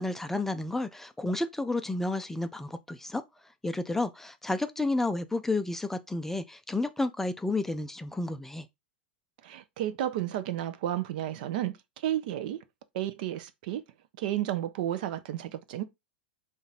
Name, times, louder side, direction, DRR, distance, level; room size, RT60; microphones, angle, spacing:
voice 1, 0.0-3.2 3.6-8.7, left 2 dB, 5° left, 0.3 m, -31 dB
voice 2, 9.4-11.7 12.0-12.6 12.9-13.8 14.2-15.8, right 12 dB, 60° right, 0.5 m, -32 dB
3.9 x 2.5 x 4.0 m
hypercardioid pair, 95°, 5 cm